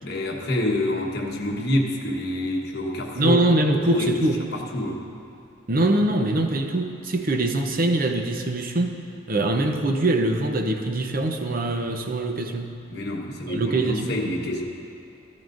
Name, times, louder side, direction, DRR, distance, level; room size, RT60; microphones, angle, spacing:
voice 1, 0.0-3.4 3.9-4.3 4.5-5.0 12.9-14.6, left 1 dB, 50° left, 0 dB, 1.1 m, -27 dB
voice 2, 3.2-4.4 5.7-9.0 9.3-12.7 13.5-14.1, right 2 dB, 45° right, 4 dB, 0.6 m, -23 dB
14.0 x 14.0 x 2.5 m, 2.5 s
head